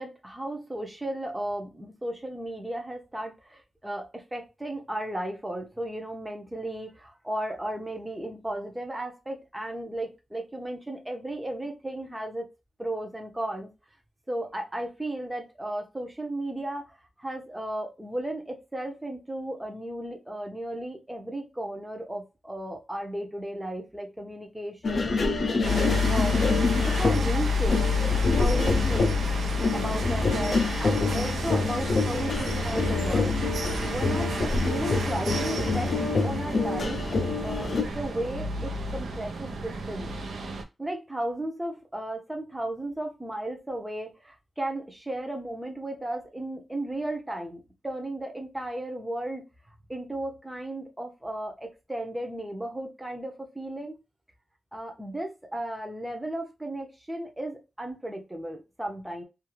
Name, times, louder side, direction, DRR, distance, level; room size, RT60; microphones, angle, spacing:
voice 1, 0.0-12.5 12.8-13.7 14.3-26.4 26.8-27.8 28.3-29.2 29.7-33.4 33.8-35.9 36.2-37.0 37.4-40.1 40.8-49.4 49.9-54.0 54.7-59.2, right 1 dB, 10° right, 0.7 m, -35 dB
sound 1, 24.8-37.8, left 3 dB, 50° left, 0.5 m, -27 dB
sound 2, 25.6-40.6, left 2 dB, 80° right, 0.6 m, -29 dB
2.5 x 2.4 x 3.0 m
wide cardioid pair, 140°, 0 cm